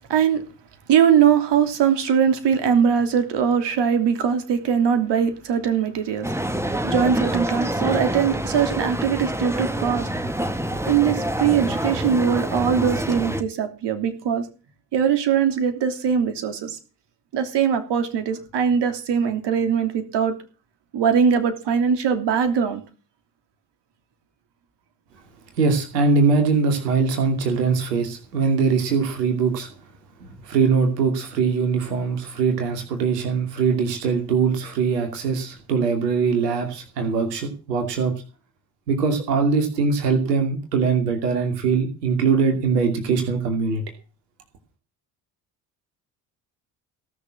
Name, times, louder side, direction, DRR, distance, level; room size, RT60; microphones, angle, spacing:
voice 1, 0.1-0.4 0.9-6.3 6.8-10.1 10.9-14.5 14.9-16.8 17.3-20.4 20.9-22.8, right 7 dB, 60° right, 8 dB, 3.1 m, -21 dB
sound 1, 6.2-13.4, right 1 dB, 5° right, 1.6 m, -26 dB
voice 2, 25.6-29.7 30.2-38.1 38.9-43.8, right 5 dB, 90° right, 5 dB, 2.7 m, -22 dB
17.5 x 6.7 x 7.5 m, 0.35 s
hypercardioid pair, 55°, 47 cm